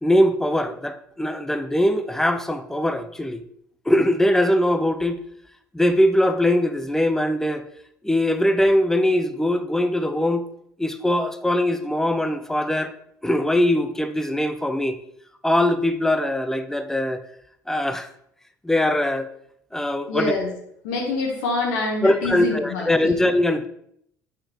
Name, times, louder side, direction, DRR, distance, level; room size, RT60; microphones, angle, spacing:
voice 1, 0.0-3.4 3.9-5.2 5.7-7.7 8.0-10.4 10.8-12.9 13.2-15.0 15.4-17.2 17.7-18.1 18.6-19.3 19.7-20.3 22.0-23.7, left 1 dB, 5° left, 9 dB, 0.5 m, -21 dB
voice 2, 20.1-20.5 20.8-23.2, left 3 dB, 65° left, 0 dB, 1.2 m, -26 dB
7.6 x 4.3 x 3.0 m, 0.72 s
figure-of-eight pair, 60°, 9 cm